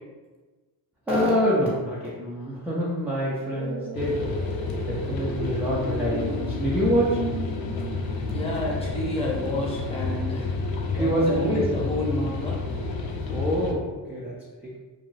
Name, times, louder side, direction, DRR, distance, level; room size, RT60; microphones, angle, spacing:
voice 1, 1.1-4.2 4.9-7.2 10.9-11.6 13.3-14.3, equal, 5° right, -7 dB, 0.4 m, -25 dB
sound 1, 3.5-9.7 10.0-10.1, right 2 dB, 90° right, 0.8 m, -37 dB
sound 2, 3.9-13.7, left 3 dB, 50° left, 0.6 m, -30 dB
voice 2, 8.3-12.6, left 1 dB, 15° left, -4 dB, 0.8 m, -30 dB
2.5 x 2.2 x 3.0 m, 1.3 s
supercardioid pair, 90°, 45 cm